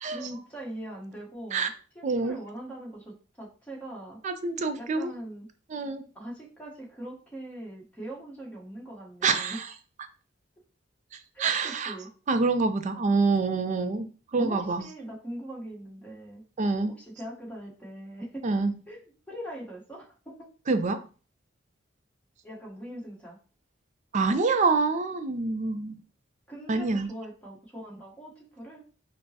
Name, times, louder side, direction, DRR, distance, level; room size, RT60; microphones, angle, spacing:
voice 1, 0.0-1.7 1.9-4.2 4.8-5.5 6.1-9.6 11.3-12.1 14.4-16.4 16.9-18.5 18.9-20.5 22.4-23.4 26.5-28.9, right 1 dB, 5° left, -3 dB, 1.0 m, -41 dB
voice 2, 2.0-2.4 4.2-5.1 5.7-6.0 9.2-9.7 11.4-12.0 12.3-14.8 16.6-16.9 18.4-18.7 20.7-21.0 24.1-26.0 26.7-27.1, right 4 dB, 40° right, 9 dB, 0.4 m, -26 dB
5.3 x 2.0 x 2.8 m, 0.37 s
head